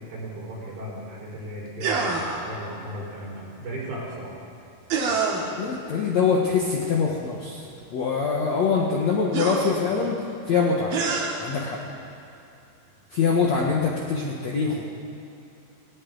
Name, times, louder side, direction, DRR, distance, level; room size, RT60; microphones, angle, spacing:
voice 1, 0.1-4.4 13.6-13.8, right 1 dB, 80° right, -6 dB, 6.8 m, -36 dB
sound 1, 1.8-2.5 4.9-5.6 7.7-7.8 9.3-10.1 10.9-11.5, right 4 dB, 60° right, 3.3 m, -26 dB
voice 2, 5.6-10.2 10.5-10.9 11.4-11.8 13.1-14.9, left 5 dB, 70° left, -2 dB, 1.7 m, -24 dB
19.0 x 18.5 x 3.9 m, 2.8 s
omnidirectional pair, 4.9 m